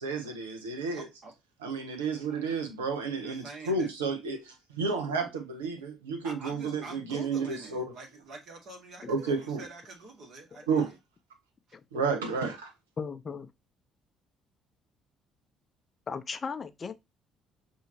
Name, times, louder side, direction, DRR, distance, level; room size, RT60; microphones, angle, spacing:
voice 1, 0.0-1.1 1.6-7.8 9.1-9.6 10.7-10.9 11.9-12.7, right 4 dB, 85° right, 0.7 m, -31 dB
voice 2, 0.9-1.3 2.3-2.4 3.1-3.9 6.2-11.0, right 3 dB, 55° right, 1.8 m, -46 dB
voice 3, 13.0-13.5 16.1-17.0, left 5 dB, 40° left, 0.5 m, -36 dB
5.6 x 2.7 x 2.8 m
hypercardioid pair, 55°, 0 cm